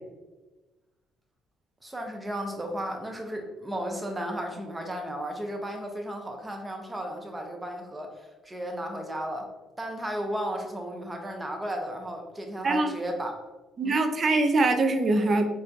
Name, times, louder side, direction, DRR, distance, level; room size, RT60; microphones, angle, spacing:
voice 1, 1.8-9.5 9.8-13.3 13.8-14.0, equal, 20° right, 2 dB, 0.8 m, -34 dB
voice 2, 13.8-15.6, right 2 dB, 45° right, 7 dB, 0.4 m, -23 dB
4.2 x 2.6 x 2.5 m, 1.2 s
hypercardioid pair, 55°, 0 cm